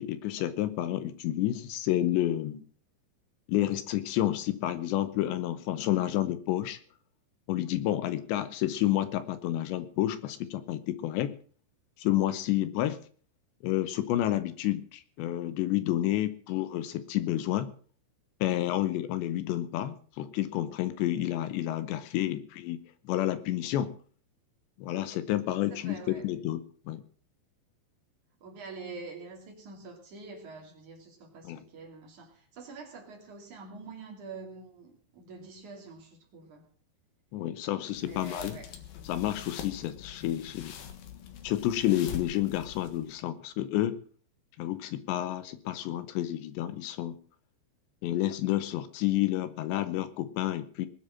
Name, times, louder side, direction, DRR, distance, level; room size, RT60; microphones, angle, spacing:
voice 1, 0.0-2.6 3.5-6.8 7.5-11.3 12.0-13.0 13.6-17.7 18.4-23.9 24.8-27.0 31.4-31.6 37.3-38.6 39.1-40.8 41.4-44.0 44.6-47.2 48.0-50.9, left 13 dB, 80° left, 13 dB, 3.0 m, -30 dB
voice 2, 25.7-26.3 28.4-36.7 38.0-38.8, right 4 dB, 45° right, 2 dB, 3.7 m, -46 dB
sound 1, 37.9-43.2, left 9 dB, 60° left, 2.9 m, -44 dB
20.0 x 7.3 x 7.5 m, 0.43 s
omnidirectional pair, 5.3 m